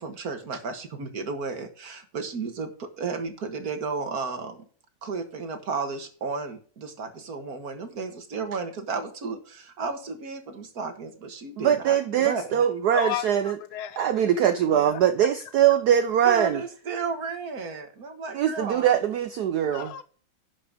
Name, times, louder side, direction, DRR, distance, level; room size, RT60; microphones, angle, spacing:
voice 1, 0.0-4.6 5.0-12.6 16.2-19.0, right 4 dB, 50° right, 1.9 m, -33 dB
voice 2, 11.6-13.6 14.0-16.6 18.3-19.9, right 9 dB, 70° right, 0.9 m, -22 dB
voice 3, 12.9-14.0 14.4-14.5 14.8-15.0 19.7-20.0, left 12 dB, 85° left, 1.5 m, -33 dB
11.0 x 6.1 x 5.1 m
omnidirectional pair, 2.3 m